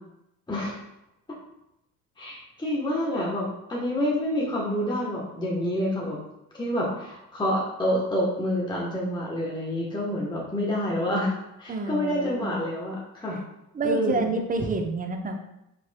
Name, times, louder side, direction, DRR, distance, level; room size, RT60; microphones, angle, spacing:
voice 1, 0.5-0.8 2.2-6.2 6.5-11.3 11.6-13.4 13.8-14.3, equal, 10° left, -4 dB, 1.0 m, -28 dB
voice 2, 11.7-12.6 13.7-15.5, right 3 dB, 20° right, 5 dB, 0.7 m, -28 dB
4.7 x 4.3 x 2.2 m, 0.85 s
hypercardioid pair, 65°, 41 cm